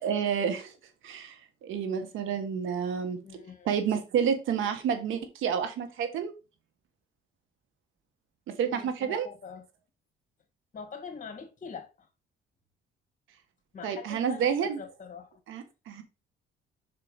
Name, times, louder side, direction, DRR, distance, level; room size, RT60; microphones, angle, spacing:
voice 1, 0.0-0.7 1.0-3.2 3.6-6.3 8.6-9.3 13.8-14.8 15.5-16.0, right 7 dB, 85° right, 1.4 m, -29 dB
voice 2, 3.2-3.7 8.7-9.6 10.7-12.1 13.7-15.4, left 5 dB, 40° left, 2.1 m, -44 dB
5.8 x 4.6 x 5.1 m
cardioid pair, 90°, 20 cm